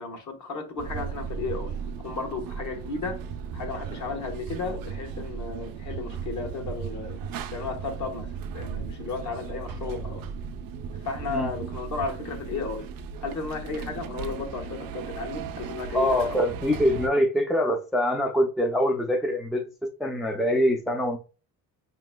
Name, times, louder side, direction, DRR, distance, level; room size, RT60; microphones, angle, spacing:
voice 1, 0.0-1.8 2.0-3.2 3.5-7.2 7.5-10.2 10.9-12.9 13.2-16.4, left 4 dB, 55° left, 1.2 m, -34 dB
sound 1, 0.8-17.1, right 6 dB, 75° right, 0.6 m, -36 dB
voice 2, 15.9-19.7 20.0-21.2, equal, ahead, 0.4 m, -24 dB
5.2 x 3.0 x 2.2 m
cardioid pair, 125°, 35 cm